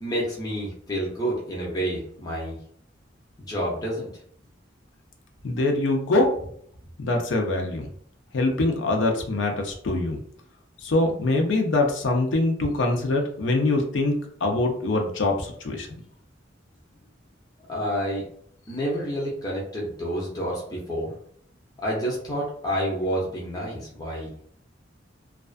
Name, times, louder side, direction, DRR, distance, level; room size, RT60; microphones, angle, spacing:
voice 1, 0.0-2.6 3.5-4.1 17.7-18.2 18.7-21.1 21.8-24.3, equal, 20° left, -5 dB, 0.6 m, -29 dB
voice 2, 5.4-6.3 7.0-7.9 8.3-10.2 10.8-14.2 14.4-15.9, left 2 dB, 75° left, 3 dB, 0.5 m, -23 dB
2.3 x 2.2 x 2.4 m, 0.63 s
head